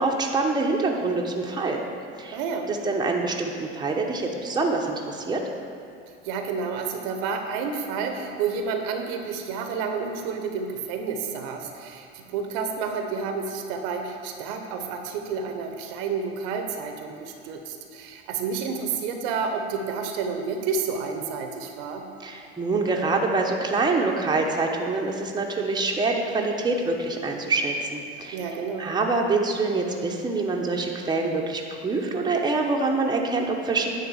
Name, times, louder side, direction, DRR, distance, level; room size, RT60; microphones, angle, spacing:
voice 1, 0.0-1.8 2.2-2.4 2.7-5.4 22.2-28.4 28.8-33.9, right 3 dB, 15° right, 0 dB, 1.0 m, -25 dB
voice 2, 2.3-2.7 6.2-22.1 28.3-28.9, right 5 dB, 60° right, 4 dB, 0.9 m, -30 dB
9.6 x 3.9 x 7.1 m, 2.5 s
hypercardioid pair, 75°, 32 cm